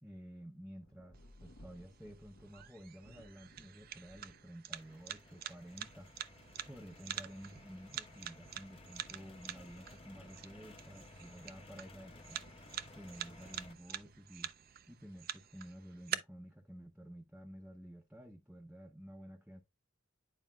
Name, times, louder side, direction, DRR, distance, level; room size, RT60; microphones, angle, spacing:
voice 1, 0.0-6.1 6.7-12.4 12.9-14.5 14.9-19.6, equal, 5° right, 0.6 m, -52 dB
Thunder, 0.8-16.8 17.6-17.7 18.3-18.7, equal, 80° left, 1.2 m, -65 dB
sound 1, 1.1-16.1, right 10 dB, 50° right, 0.5 m, -47 dB
sound 2, 4.7-13.7, left 2 dB, 30° left, 0.9 m, -57 dB
9.3 x 4.7 x 2.3 m
head